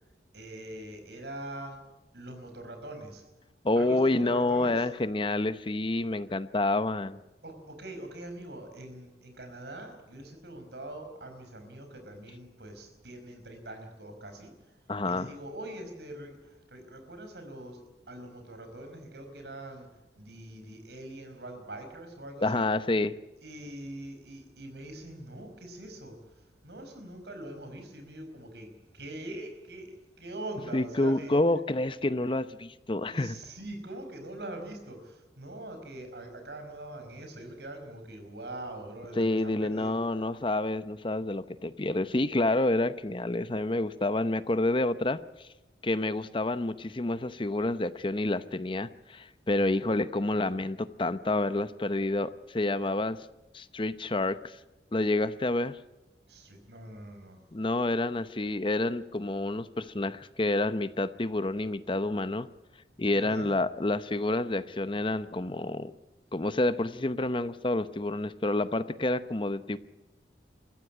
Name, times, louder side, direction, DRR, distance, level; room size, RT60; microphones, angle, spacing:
voice 1, 0.3-1.9 2.1-3.2 3.8-4.9 7.4-19.9 20.2-22.7 23.4-31.4 33.0-40.2 49.5-49.8 56.3-57.4 63.1-63.5, right 1 dB, 70° right, 6 dB, 5.1 m, -43 dB
voice 2, 3.6-7.2 14.9-15.3 22.4-23.1 30.7-33.3 39.2-45.2 45.8-53.2 53.5-54.6 54.9-55.8 57.5-62.5 63.0-65.9 66.3-69.8, left 2 dB, 30° left, 14 dB, 0.8 m, -28 dB
22.5 x 15.0 x 9.8 m, 1.1 s
head